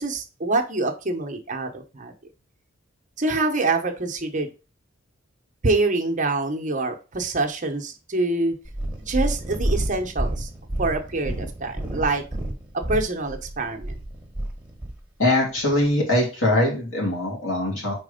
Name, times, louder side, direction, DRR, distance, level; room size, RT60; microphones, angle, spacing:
voice 1, 0.0-2.1 3.2-4.5 5.6-8.5 9.0-10.5 10.8-12.2 12.9-13.9, right 2 dB, 40° right, 4 dB, 1.0 m, -25 dB
Purr, 8.6-15.0 15.7-15.8, right 1 dB, 5° right, 1.4 m, -29 dB
voice 2, 15.2-17.9, left 1 dB, 70° left, -2 dB, 3.0 m, -22 dB
4.7 x 4.2 x 5.1 m, 0.33 s
head